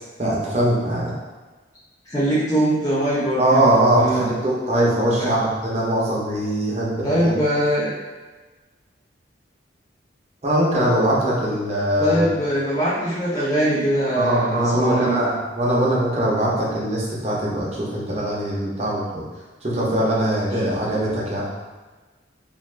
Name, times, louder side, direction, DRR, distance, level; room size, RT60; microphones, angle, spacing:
voice 1, 0.2-1.1 3.4-7.3 10.4-12.3 14.2-19.2 19.6-21.5, right 1 dB, 35° right, -5 dB, 0.7 m, -21 dB
voice 2, 2.1-3.7 4.0-4.3 5.2-5.4 7.0-7.9 12.0-15.3, right 1 dB, 20° left, -9 dB, 0.8 m, -22 dB
2.6 x 2.5 x 3.2 m, 1.3 s
head